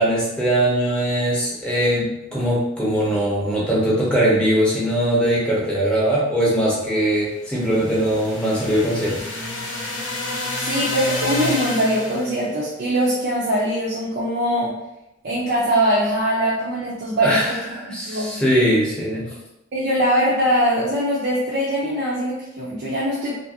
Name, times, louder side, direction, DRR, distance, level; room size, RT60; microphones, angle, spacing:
voice 1, 0.0-9.2 17.2-19.3, right 1 dB, 5° left, -6 dB, 0.7 m, -21 dB
sound 1, 7.4-12.4, left 1 dB, 80° left, 0.8 m, -29 dB
voice 2, 10.5-14.7 15.2-17.4 17.7-18.4 19.7-23.4, equal, 55° right, -7 dB, 0.5 m, -22 dB
2.7 x 2.5 x 2.7 m, 0.89 s
head